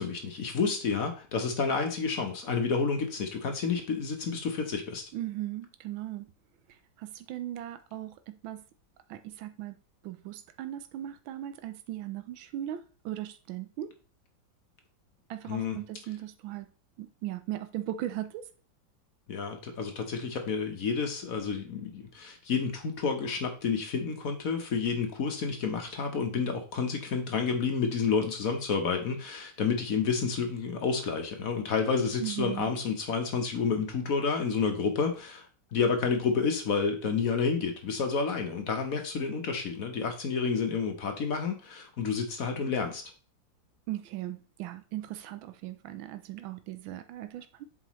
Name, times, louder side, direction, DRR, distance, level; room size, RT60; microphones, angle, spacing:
voice 1, 0.0-5.0 15.5-15.8 19.3-43.0, left 5 dB, 55° left, 4 dB, 1.2 m, -30 dB
voice 2, 5.1-6.3 6.7-8.6 9.1-9.7 10.0-13.9 15.3-16.7 17.0-18.5 32.2-32.7 43.9-47.6, right 13 dB, 85° right, 10 dB, 1.4 m, -38 dB
7.5 x 4.9 x 3.1 m, 0.38 s
omnidirectional pair, 2.1 m